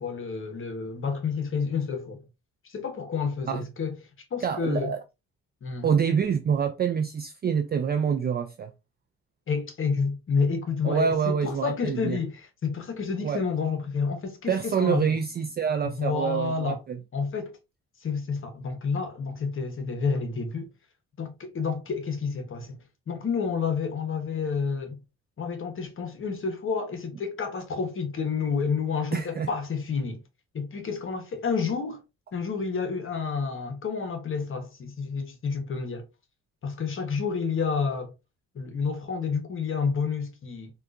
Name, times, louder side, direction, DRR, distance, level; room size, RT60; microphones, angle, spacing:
voice 1, 0.0-2.2 2.6-4.0 4.3-4.9 5.6-5.9 9.5-15.2 15.8-16.8 17.1-17.6 18.0-20.7 21.2-22.8 23.1-25.0 25.4-30.2 30.5-32.0 32.3-36.1 36.6-38.1 38.5-40.7, left 5 dB, 45° left, 0.9 m, -29 dB
voice 2, 4.4-5.0 5.8-8.7 10.8-12.2 13.2-13.4 14.5-17.0 29.1-29.5, right 7 dB, 35° right, 0.4 m, -26 dB
3.7 x 2.3 x 2.4 m
cardioid pair, 90°, 30 cm